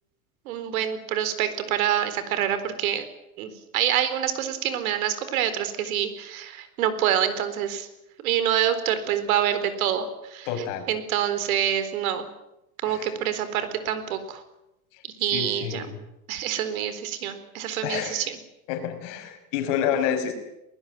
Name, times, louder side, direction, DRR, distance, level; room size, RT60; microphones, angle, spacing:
voice 1, 0.5-3.0 3.4-7.9 8.2-10.5 10.9-12.3 12.8-14.4 15.2-15.8 16.3-18.4, right 10 dB, 65° right, 12 dB, 4.2 m, -26 dB
voice 2, 10.5-10.9 12.9-13.1 15.3-16.0 17.8-18.2 18.7-20.3, left 8 dB, 50° left, 7 dB, 5.6 m, -28 dB
21.0 x 20.5 x 9.1 m, 0.88 s
supercardioid pair, 145°, 45 cm